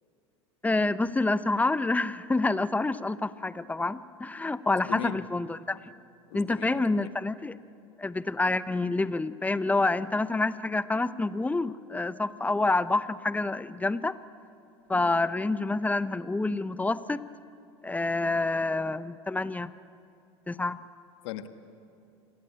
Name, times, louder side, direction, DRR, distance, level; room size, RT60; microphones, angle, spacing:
voice 1, 0.6-5.8 6.3-7.5 8.0-14.2 14.9-17.2 17.8-19.7 20.5-20.8, left 2 dB, 10° left, 14 dB, 0.8 m, -27 dB
voice 2, 4.9-5.2 6.3-7.1 21.2-21.5, left 13 dB, 75° left, 8 dB, 1.6 m, -38 dB
27.5 x 20.0 x 8.8 m, 2.5 s
hypercardioid pair, 90°, 15 cm